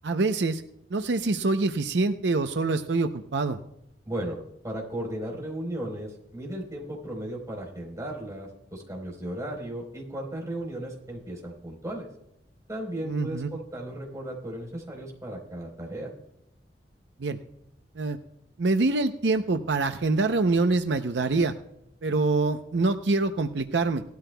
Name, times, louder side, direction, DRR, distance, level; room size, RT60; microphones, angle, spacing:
voice 1, 0.0-0.6 0.9-3.6 13.0-13.5 17.2-17.4 18.0-18.2 18.6-21.5 22.0-24.0, right 3 dB, 80° right, 8 dB, 0.6 m, -25 dB
voice 2, 4.1-4.4 4.6-12.1 12.7-16.1, right 1 dB, 20° right, -1 dB, 4.0 m, -35 dB
18.5 x 12.5 x 2.3 m, 0.81 s
head